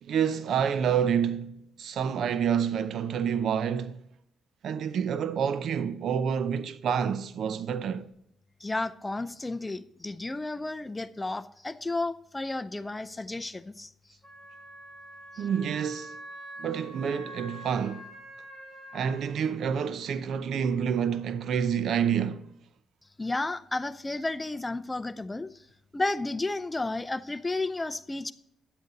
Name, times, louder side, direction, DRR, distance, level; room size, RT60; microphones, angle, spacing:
voice 1, 0.0-4.0 4.6-8.1 15.4-16.2 16.6-18.1 18.9-22.5, right 7 dB, 65° right, 0.6 m, -28 dB
voice 2, 8.6-13.9 23.2-25.5 25.9-28.3, left 2 dB, 15° left, 0.6 m, -32 dB
Wind instrument woodwind instrument, 14.2-19.3, right 1 dB, 15° right, 4.1 m, -45 dB
10.5 x 8.1 x 4.0 m
cardioid pair, 90°, 0 cm